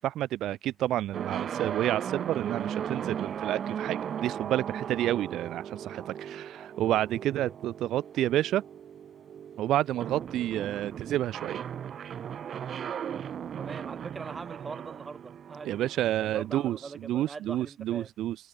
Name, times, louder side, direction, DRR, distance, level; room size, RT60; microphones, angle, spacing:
voice 1, 0.0-8.6 9.6-11.6 15.6-16.8 17.0-18.4, right 13 dB, 80° right, 0.8 m, -29 dB
sound 1, 1.1-16.9, right 8 dB, 60° right, 3.6 m, -37 dB
voice 2, 13.6-18.1, right 4 dB, 30° right, 5.7 m, -42 dB
cardioid pair, 90°, 0 cm